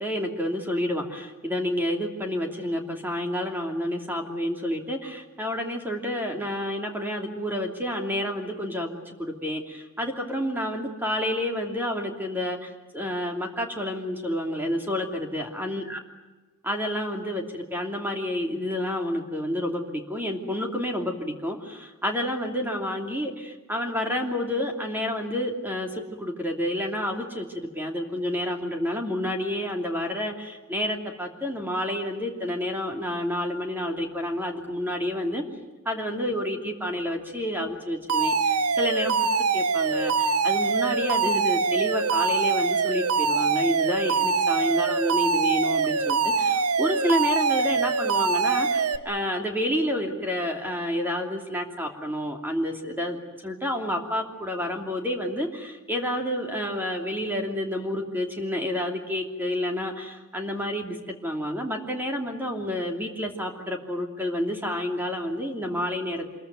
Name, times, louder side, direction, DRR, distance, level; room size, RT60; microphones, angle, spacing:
voice 1, 0.0-16.0 16.6-35.4 35.8-39.1 39.5-66.3, left 1 dB, 10° right, 2 dB, 2.9 m, -29 dB
Alarm, 38.1-49.0, right 5 dB, 85° right, 1.2 m, -24 dB
26.5 x 22.0 x 9.3 m, 1.2 s
head